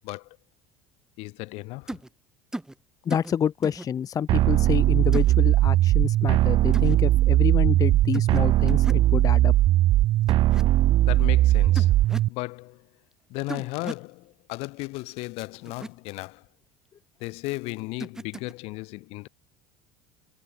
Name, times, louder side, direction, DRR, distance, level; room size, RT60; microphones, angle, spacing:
voice 1, 0.0-0.4 1.2-2.0 11.0-11.9 12.3-12.9 13.3-16.5 17.2-19.3, left 24 dB, 70° left, 6.1 m, -35 dB
sound 1, 1.9-2.1 2.5-2.7 3.1-3.3 3.6-3.9 5.1-5.3 6.7-7.0 8.1-8.4 8.7-9.0 10.3-10.6 11.8-12.3 13.5-14.1 15.7-15.9 18.0-18.5, right 1 dB, 5° right, 0.6 m, -36 dB
voice 2, 3.1-9.5, left 8 dB, 35° left, 0.6 m, -28 dB
sound 2, 4.3-12.3, right 15 dB, 55° right, 0.5 m, -19 dB
supercardioid pair, 95°, 11 cm